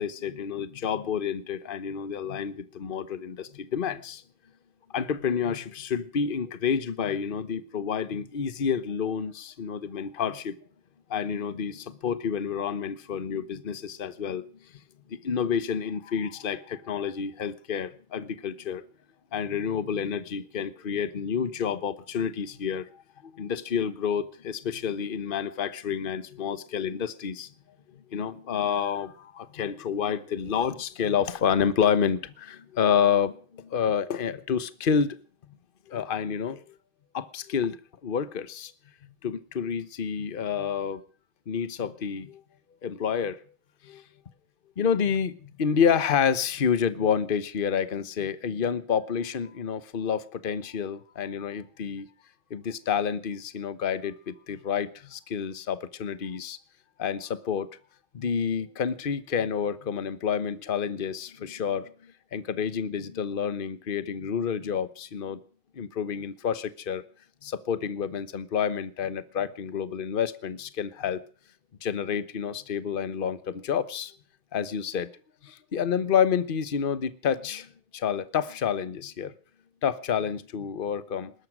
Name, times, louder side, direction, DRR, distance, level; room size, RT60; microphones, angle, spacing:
voice 1, 0.0-4.2 4.9-10.6 11.1-14.4 15.1-18.8 19.3-22.9 23.2-27.5 28.1-35.2 35.9-36.6 37.1-38.7 39.2-41.0 41.5-42.4 42.8-43.4 43.8-44.0 44.8-52.1 52.5-56.6 57.0-57.7 58.1-61.9 62.3-65.4 65.7-67.0 67.4-71.2 71.8-74.1 74.5-75.1 75.4-79.3 79.8-81.3, left 7 dB, 40° left, 0.8 m, -29 dB
20.5 x 11.5 x 6.1 m
omnidirectional pair, 2.2 m